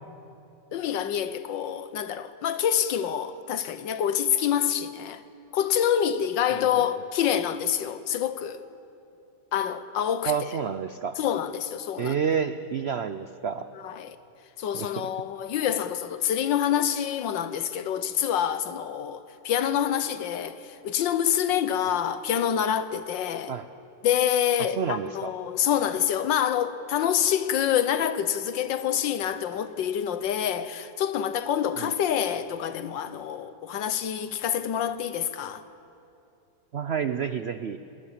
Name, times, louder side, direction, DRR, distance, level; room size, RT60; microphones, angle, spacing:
voice 1, 0.7-5.2 5.5-8.6 9.5-10.6 11.2-12.2 13.7-14.2 14.6-23.6 24.0-35.6, left 9 dB, 85° left, 1.6 m, -27 dB
voice 2, 10.3-11.2 12.0-13.7 14.7-14.9 23.5-23.7 24.8-25.3 31.8-31.9 36.7-37.8, right 7 dB, 75° right, 0.5 m, -29 dB
29.5 x 20.0 x 7.4 m
omnidirectional pair, 2.0 m